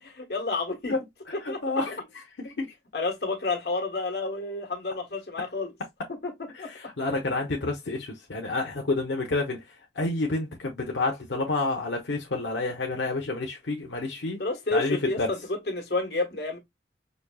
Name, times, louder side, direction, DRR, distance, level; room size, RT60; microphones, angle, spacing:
voice 1, 0.0-0.9 1.5-1.6 2.4-2.5 2.9-5.7 6.2-6.3 6.6-6.7 14.4-16.6, left 3 dB, 60° left, 1.4 m, -30 dB
voice 2, 1.4-2.2 2.6-2.7 6.5-9.6 9.9-14.4 14.7-15.3, left 2 dB, 85° left, 0.9 m, -29 dB
5.2 x 2.7 x 2.2 m
head